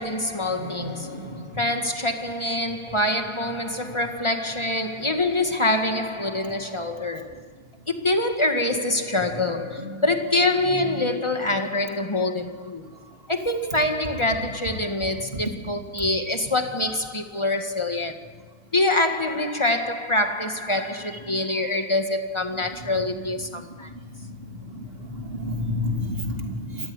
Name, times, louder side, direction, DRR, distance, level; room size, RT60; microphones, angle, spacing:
voice 1, 0.0-7.4 7.9-12.8 13.3-18.3 18.7-23.9, left 2 dB, 15° left, 1.6 m, -25 dB
voice 2, 0.6-1.3 24.7-26.9, left 1 dB, 30° right, 3.2 m, -30 dB
28.5 x 14.5 x 9.8 m
omnidirectional pair, 2.1 m